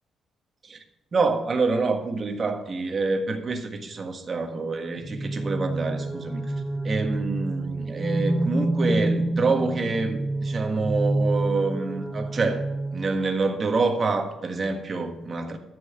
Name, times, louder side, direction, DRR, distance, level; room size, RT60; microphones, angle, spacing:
voice 1, 1.1-6.5 6.8-12.6 12.9-15.6, right 3 dB, 35° right, 5 dB, 1.5 m, -27 dB
sound 1, 5.0-13.4, right 1 dB, 5° left, 1.0 m, -28 dB
12.5 x 5.7 x 7.6 m, 1.0 s
cardioid pair, 120°, 0 cm